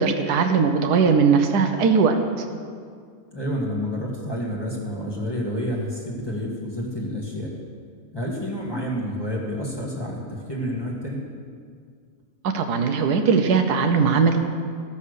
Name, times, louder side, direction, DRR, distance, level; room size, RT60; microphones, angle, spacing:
voice 1, 0.0-2.2 12.5-14.6, right 5 dB, 75° right, 5 dB, 1.3 m, -19 dB
voice 2, 3.3-7.5 8.1-11.2, equal, 15° left, -3 dB, 1.6 m, -29 dB
14.5 x 5.5 x 6.6 m, 2.1 s
omnidirectional pair, 1.7 m